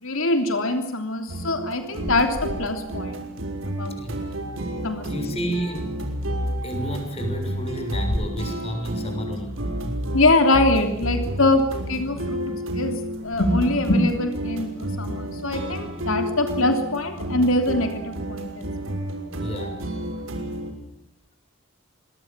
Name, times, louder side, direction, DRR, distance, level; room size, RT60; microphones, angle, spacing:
voice 1, 0.0-3.3 3.7-4.0 4.8-5.1 10.1-14.7 15.0-18.9, left 2 dB, 80° left, 6 dB, 3.2 m, -23 dB
sound 1, 1.3-20.7, right 1 dB, 80° right, 6.3 m, -31 dB
sound 2, 2.0-3.2 3.5-3.6 3.8-3.9 4.1-5.2 6.1-6.2 6.5-6.6 7.3-8.7 9.5-11.8 12.1-12.5 12.9-14.0, equal, 45° left, 5.9 m, -40 dB
sound 3, 3.7-20.7, left 1 dB, 60° right, 7.6 m, -43 dB
voice 2, 3.9-4.2 5.0-6.0 6.6-9.6 12.1-12.2 19.3-19.8, equal, 30° left, 6 dB, 6.8 m, -31 dB
29.0 x 22.5 x 7.5 m, 0.74 s
head